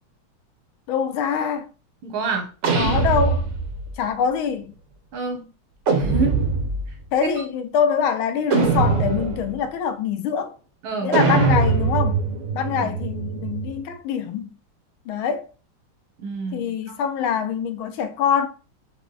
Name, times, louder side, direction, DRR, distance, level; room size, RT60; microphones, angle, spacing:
voice 1, 0.9-1.7 2.7-3.5 4.0-4.7 7.1-10.5 11.0-12.2 12.5-14.5 15.1-15.5 16.5-18.5, left 7 dB, 80° left, 1.5 m, -24 dB
voice 2, 2.0-2.5 5.1-5.5 5.9-6.4 6.9-7.0 7.2-7.3 10.8-11.2 12.8-13.0 16.2-16.9, right 4 dB, 85° right, 2.0 m, -28 dB
sound 1, 2.6-3.9 5.9-6.9 8.5-9.6 11.1-13.8, right 4 dB, 60° right, 0.7 m, -22 dB
5.8 x 2.2 x 3.9 m
omnidirectional pair, 2.3 m